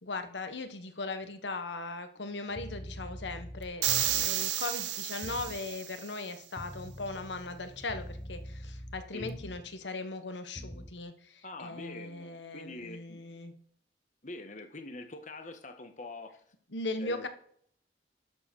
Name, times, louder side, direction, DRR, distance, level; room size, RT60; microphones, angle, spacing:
voice 1, 0.0-13.5 16.7-17.3, left 3 dB, 85° left, 8 dB, 1.3 m, -39 dB
sound 1, 2.5-4.4 5.2-5.6 6.6-9.7 10.6-11.0, equal, 15° left, 1.1 m, -44 dB
sound 2, 3.8-6.1, right 12 dB, 80° right, 0.8 m, -31 dB
voice 2, 11.4-13.2 14.2-16.4 17.0-17.3, left 2 dB, 45° left, 7 dB, 1.3 m, -44 dB
12.0 x 4.7 x 6.3 m, 0.62 s
head